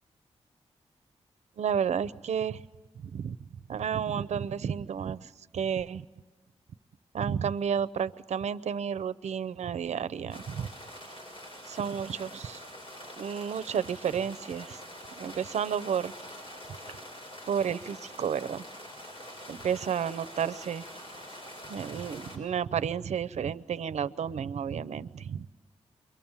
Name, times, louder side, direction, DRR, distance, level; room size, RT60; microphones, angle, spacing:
voice 1, 1.6-2.6 3.0-6.0 7.1-10.7 11.0-11.1 11.7-12.6 13.2-14.8 15.2-16.1 17.5-18.7 19.5-20.9 21.7-25.5, right 7 dB, 80° right, 16 dB, 0.7 m, -31 dB
sound 1, 10.3-22.4, equal, 50° left, 6.7 m, -45 dB
29.0 x 23.5 x 7.3 m, 1.3 s
wide cardioid pair, 110°, 12 cm